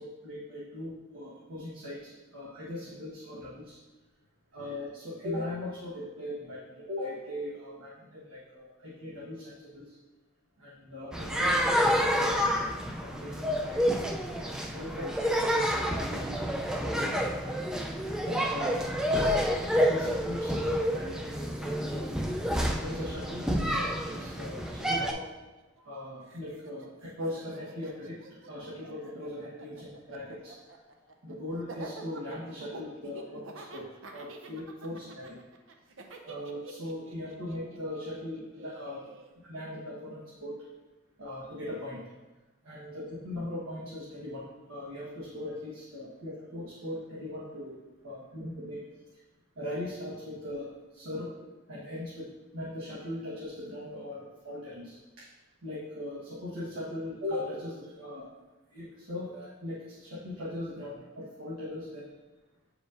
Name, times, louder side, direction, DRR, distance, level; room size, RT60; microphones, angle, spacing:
voice 1, 0.0-3.8 4.5-9.9 10.6-13.9 14.4-17.1 17.4-17.6 18.2-18.8 19.1-19.4 19.7-22.1 22.8-25.2 25.8-28.1 28.5-30.5 31.2-33.9 34.1-35.3 36.2-39.0 39.5-40.6 41.2-42.0 42.6-47.8 48.0-48.8 49.6-50.7 50.9-51.3 51.7-52.3 52.5-55.2 55.6-58.3 58.7-62.1, left 1 dB, 85° right, -8 dB, 1.2 m, -39 dB
sound 1, 11.1-25.1, equal, 5° right, 0.3 m, -29 dB
Laughter, 23.6-26.0 26.3-39.3, right 3 dB, 65° right, 0.6 m, -48 dB
7.7 x 5.0 x 2.5 m, 1.2 s
head